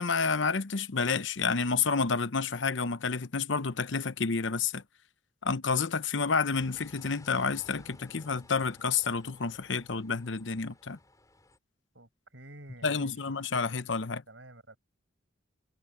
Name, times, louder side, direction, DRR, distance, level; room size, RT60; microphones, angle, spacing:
voice 1, 0.0-4.8 5.4-11.0 12.8-14.2, left 5 dB, 70° left, 0.9 m, -29 dB
sound 1, 6.5-11.6, left 2 dB, 20° left, 5.3 m, -56 dB
voice 2, 11.9-13.3 14.3-14.8, right 1 dB, 70° right, 6.7 m, -50 dB
head